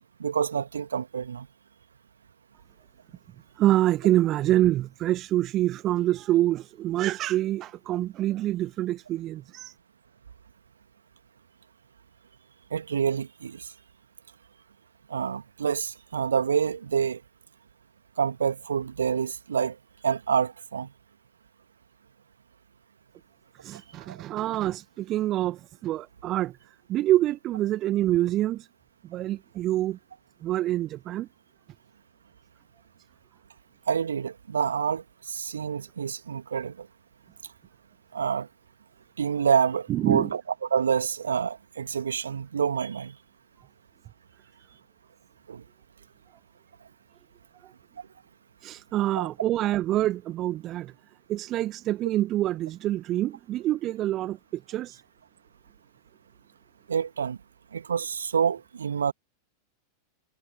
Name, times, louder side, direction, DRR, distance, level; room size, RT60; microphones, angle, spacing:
voice 1, 0.0-1.5 12.7-13.7 15.1-17.2 18.2-19.8 20.0-20.9 24.1-24.2 33.9-36.9 38.1-38.5 39.2-43.2 45.5-45.6 49.1-49.3 56.9-57.4 57.7-59.1, right 7 dB, 70° right, 2.4 m, -27 dB
voice 2, 3.6-9.7 23.6-28.7 29.0-30.0 30.4-31.3 39.9-40.3 47.6-47.7 48.6-50.9 51.3-55.0, right 14 dB, 35° right, 1.5 m, -26 dB
figure-of-eight pair, 90°, 0 cm